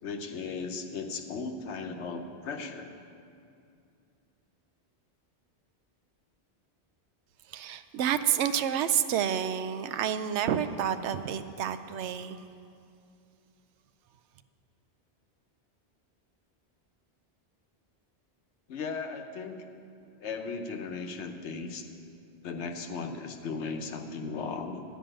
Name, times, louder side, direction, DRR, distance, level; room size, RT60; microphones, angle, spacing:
voice 1, 0.0-2.9 18.7-19.6 20.2-21.9 22.4-24.8, left 4 dB, 85° left, 6 dB, 1.1 m, -36 dB
voice 2, 7.5-12.4, right 9 dB, 85° right, 10 dB, 0.9 m, -29 dB
11.5 x 5.4 x 8.9 m, 2.5 s
omnidirectional pair, 1.1 m